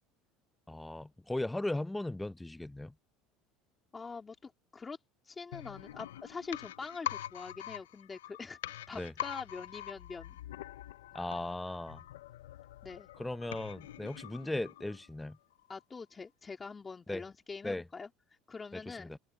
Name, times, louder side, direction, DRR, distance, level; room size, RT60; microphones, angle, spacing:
voice 1, 0.7-2.9 8.9-9.1 11.1-12.0 13.2-15.4 17.1-17.2 17.6-17.8 18.7-19.2, left 1 dB, 10° left, 0.7 m, -37 dB
voice 2, 3.9-5.0 5.2-10.4 12.8-13.1 15.7-18.1 18.5-19.2, left 4 dB, 25° left, 2.8 m, -44 dB
sound 1, 5.5-15.2 15.5-15.6, left 13 dB, 90° left, 0.5 m, -44 dB
supercardioid pair, 90°, 0 cm